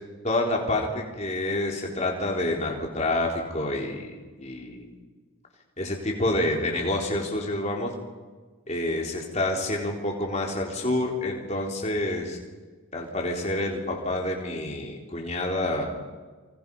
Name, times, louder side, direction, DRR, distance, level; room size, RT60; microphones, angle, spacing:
voice 1, 0.2-4.9 5.8-7.9 8.7-12.4 12.9-15.9, left 1 dB, 30° left, 0 dB, 4.0 m, -28 dB
28.0 x 26.0 x 5.6 m, 1.4 s
head